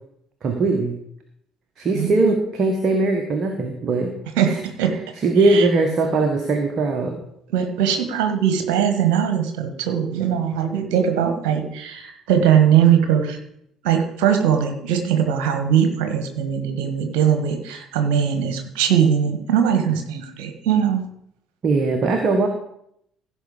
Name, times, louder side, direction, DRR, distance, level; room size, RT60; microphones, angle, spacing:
voice 1, 0.4-0.9 1.8-4.1 4.4-4.6 5.2-7.2 21.6-22.5, right 3 dB, 45° right, 4 dB, 1.4 m, -20 dB
voice 2, 1.9-2.4 4.4-5.0 5.5-5.7 7.5-13.4 13.8-21.0, right 8 dB, 65° right, 7 dB, 1.6 m, -20 dB
15.5 x 5.5 x 5.1 m, 0.73 s
figure-of-eight pair, 55°, 0 cm